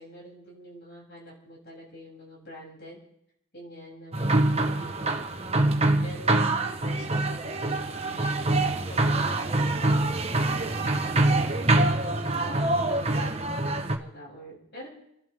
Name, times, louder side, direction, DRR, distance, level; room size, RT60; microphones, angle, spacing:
voice 1, 0.0-3.0 3.5-5.6 6.0-8.3 8.7-11.9 12.3-14.9, equal, 55° left, -3 dB, 7.6 m, -45 dB
sound 1, 4.1-14.0, right 2 dB, 30° right, 1.2 m, -25 dB
30.0 x 12.0 x 3.7 m, 0.77 s
head